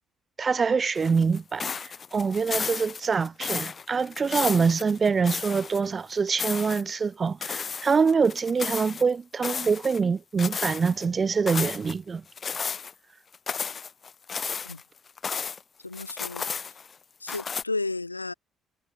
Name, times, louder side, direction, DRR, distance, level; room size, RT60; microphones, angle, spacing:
voice 1, 0.4-12.2, right 5 dB, 35° right, 0.8 m, -25 dB
sound 1, 1.0-5.8 6.1-6.8 7.4-9.0 9.4-10.0 10.4-11.1 11.5-11.9 12.4-12.9 13.3-15.6 15.9-16.9 17.3-17.6, left 6 dB, 40° left, 1.0 m, -33 dB
voice 2, 15.8-16.4 17.2-18.3, left 3 dB, 85° left, 0.8 m, -32 dB
figure-of-eight pair, 45°, 0 cm